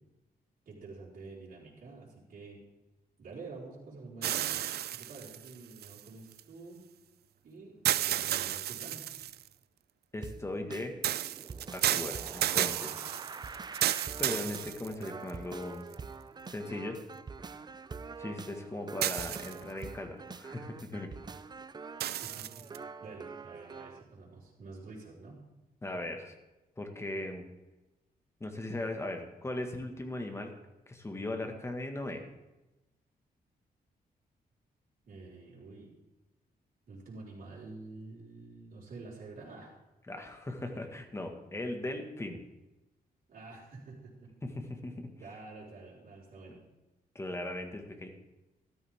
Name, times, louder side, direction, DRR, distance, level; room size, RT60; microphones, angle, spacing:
voice 1, 0.7-2.6 3.2-4.6 4.9-6.8 7.4-9.0 22.2-25.4 35.0-35.9 36.9-39.7 43.3-44.3 45.2-46.6, right 3 dB, 60° right, -7 dB, 4.5 m, -48 dB
sound 1, 4.2-6.4 7.8-9.5 11.0-15.3 15.9-16.0 19.0-19.8 22.0-22.8, right 12 dB, 80° right, 0.4 m, -32 dB
voice 2, 10.1-10.9 11.7-13.0 14.2-15.9 16.5-17.0 18.2-21.1 25.8-26.3 26.8-27.4 28.4-30.5 30.9-32.2 40.1-42.4 44.4-45.1 47.2-48.1, left 1 dB, 15° left, 4 dB, 1.8 m, -38 dB
sound 2, 10.2-24.0, right 5 dB, 25° right, 0.5 m, -45 dB
13.5 x 13.5 x 3.7 m, 1.0 s
wide cardioid pair, 130°, 16 cm